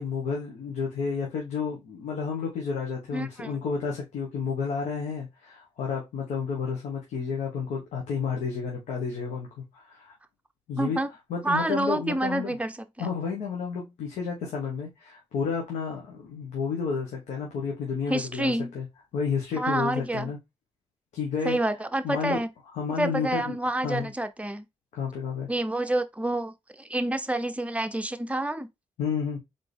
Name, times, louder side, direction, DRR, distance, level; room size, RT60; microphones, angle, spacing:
voice 1, 0.0-10.1 10.7-11.0 11.3-12.5 13.0-18.8 19.1-20.4 21.1-21.6 22.0-22.4 22.7-23.5 23.8-24.1 24.9-25.5 29.0-29.4, left 5 dB, 85° left, 1.4 m, -31 dB
voice 2, 3.1-3.6 10.8-11.1 11.4-13.1 18.1-18.7 19.5-20.3 21.4-22.5 23.0-24.7 25.5-28.7, right 1 dB, 10° right, 0.8 m, -28 dB
4.0 x 3.9 x 3.4 m
cardioid pair, 60°, 12 cm